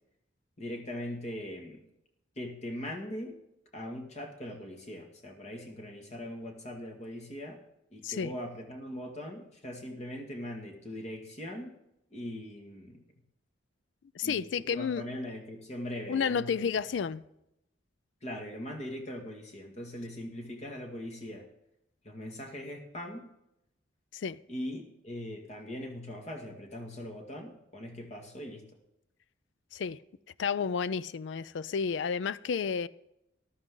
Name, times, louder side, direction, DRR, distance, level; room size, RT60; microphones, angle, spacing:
voice 1, 0.6-1.8 2.4-3.4 3.7-7.6 7.9-11.8 12.1-13.0 14.2-16.7 17.0-17.1 18.2-21.5 22.0-23.3 24.5-28.7, left 1 dB, 35° left, 2.0 m, -40 dB
voice 2, 14.2-15.1 16.1-17.2 24.1-24.4 29.7-30.0 30.4-32.9, left 6 dB, 70° left, 0.4 m, -31 dB
14.0 x 12.0 x 3.8 m
head